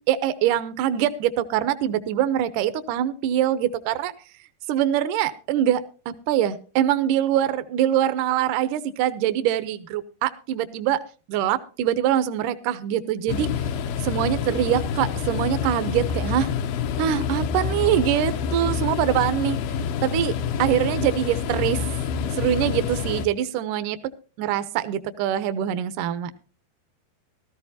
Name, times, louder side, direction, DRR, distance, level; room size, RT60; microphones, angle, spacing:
voice 1, 0.0-4.1 4.7-5.8 6.3-11.0 11.3-13.5 14.0-16.5 17.0-19.6 20.0-21.8 22.3-24.0 24.4-26.3, right 11 dB, 75° right, 12 dB, 1.9 m, -23 dB
sound 1, 13.3-23.3, left 7 dB, 80° left, 2.7 m, -27 dB
16.0 x 13.5 x 2.8 m, 0.36 s
omnidirectional pair, 4.5 m